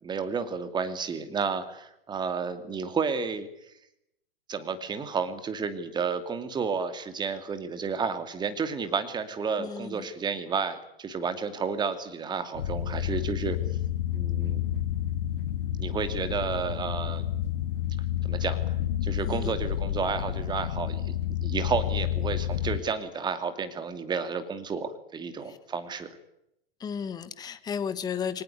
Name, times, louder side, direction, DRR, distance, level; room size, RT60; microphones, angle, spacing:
voice 1, 0.0-3.5 4.5-13.6 14.1-14.6 15.8-17.4 18.2-18.8 19.0-21.2 21.4-26.2, right 5 dB, 15° right, 10 dB, 2.6 m, -31 dB
voice 2, 9.6-10.1 19.3-19.5 25.5-25.6 26.8-28.4, left 7 dB, 15° left, 12 dB, 1.3 m, -34 dB
sound 1, 12.5-22.8, left 11 dB, 60° left, 1.7 m, -30 dB
24.5 x 18.5 x 9.4 m, 0.81 s
figure-of-eight pair, 120°, 30 cm